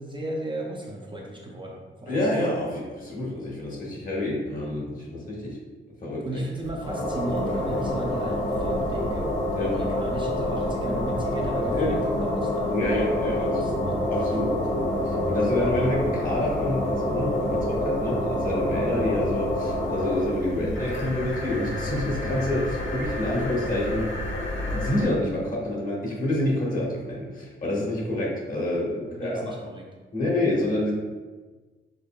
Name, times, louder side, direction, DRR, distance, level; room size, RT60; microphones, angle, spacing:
voice 1, 0.0-2.3 6.2-14.1 29.0-29.9, right 1 dB, 25° right, -2 dB, 0.5 m, -35 dB
voice 2, 2.1-5.6 6.0-6.4 9.6-9.8 11.7-12.0 12.7-13.5 14.1-24.1 24.6-29.4 30.1-30.9, left 1 dB, 40° left, -4 dB, 1.3 m, -27 dB
sound 1, 6.6-25.0, left 1 dB, 70° left, 1.0 m, -28 dB
5.2 x 3.9 x 2.2 m, 1.3 s
wide cardioid pair, 175°, 21 cm